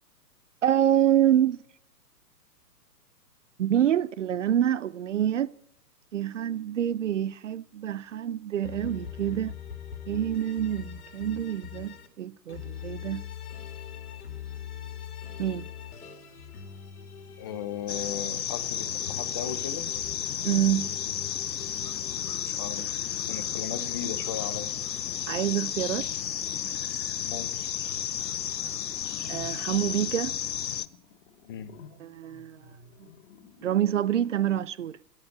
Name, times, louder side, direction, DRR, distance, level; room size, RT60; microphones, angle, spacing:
voice 1, 0.6-1.6 3.6-5.5 6.1-9.5 10.1-13.2 15.4-15.6 20.4-20.9 25.3-26.1 29.3-30.4 32.0-32.6 33.6-35.0, right 11 dB, 50° right, 0.5 m, -26 dB
sound 1, 8.6-12.1 12.5-18.1 18.5-22.4, left 8 dB, 60° left, 2.5 m, -42 dB
voice 2, 17.4-19.9 22.5-24.7 27.2-27.6 31.5-31.7, left 8 dB, 15° left, 0.5 m, -37 dB
sound 2, 17.9-30.9, left 9 dB, 80° left, 0.7 m, -32 dB
sound 3, 18.4-19.7 20.1-34.0, left 5 dB, 45° left, 2.1 m, -52 dB
11.5 x 9.7 x 10.0 m
figure-of-eight pair, 125°, 50 cm